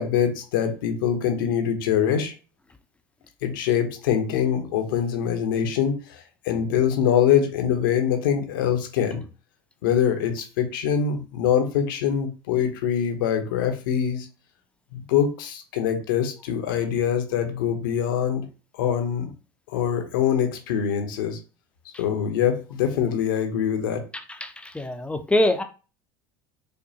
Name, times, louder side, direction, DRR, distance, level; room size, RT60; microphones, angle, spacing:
voice 1, 0.0-2.3 3.4-9.2 9.8-14.3 14.9-18.5 18.7-19.3 19.7-21.4 22.0-24.1, left 8 dB, 80° left, 0.8 m, -24 dB
voice 2, 24.4-25.6, left 1 dB, 10° left, 0.5 m, -24 dB
5.2 x 2.2 x 2.8 m
hypercardioid pair, 85°, 11 cm